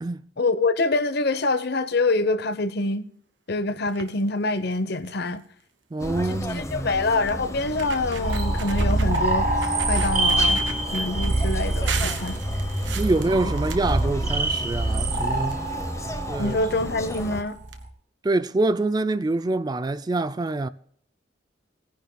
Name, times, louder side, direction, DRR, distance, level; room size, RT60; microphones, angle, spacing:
voice 1, 0.4-3.0 3.5-5.4 6.3-9.5 9.9-10.6 10.9-12.4 16.4-17.6, left 2 dB, 60° left, 0.9 m, -25 dB
sound 1, 3.8-4.2 4.7-4.8 5.1-5.3 6.5-6.6 7.3-7.4 7.7-9.2 9.6-11.3 11.9-14.6 14.9-16.0 16.9-17.0 17.3-17.4 17.7-17.8, right 6 dB, 75° right, 1.3 m, -36 dB
voice 2, 5.9-6.9 13.0-15.6 16.3-16.6 18.2-20.7, right 2 dB, 20° right, 0.3 m, -25 dB
sound 2, 6.0-17.4, left 1 dB, 15° left, 0.9 m, -33 dB
sound 3, 8.2-17.9, right 2 dB, 50° right, 2.3 m, -25 dB
20.5 x 10.5 x 2.3 m
head